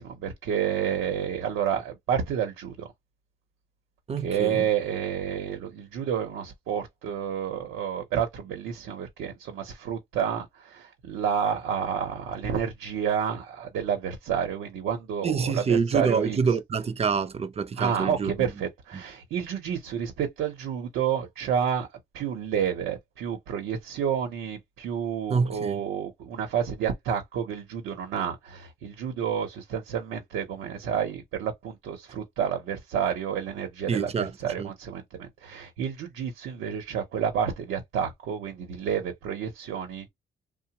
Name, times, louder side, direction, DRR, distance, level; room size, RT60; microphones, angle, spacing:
voice 1, 0.0-2.9 4.2-16.4 17.8-21.9 22.1-40.1, right 8 dB, 90° right, 0.8 m, -30 dB
voice 2, 4.1-4.6 15.2-18.3 25.3-25.8 33.9-34.3 34.6-34.7, right 5 dB, 30° right, 0.6 m, -26 dB
2.8 x 2.1 x 2.9 m
cardioid pair, 90°, 20 cm